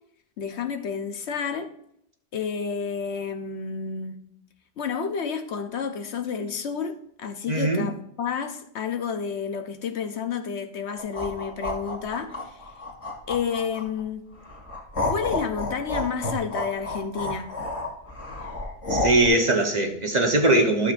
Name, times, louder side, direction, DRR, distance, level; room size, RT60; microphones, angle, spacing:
voice 1, 0.4-1.7 2.3-4.2 4.8-12.6 13.3-14.3 15.1-17.5, left 6 dB, 65° left, 1.0 m, -30 dB
voice 2, 7.5-7.9 18.9-20.9, right 2 dB, 35° right, 1.0 m, -21 dB
sound 1, 11.0-14.0 14.4-19.3, left 2 dB, 25° left, 2.2 m, -30 dB
12.0 x 6.9 x 2.5 m
omnidirectional pair, 1.3 m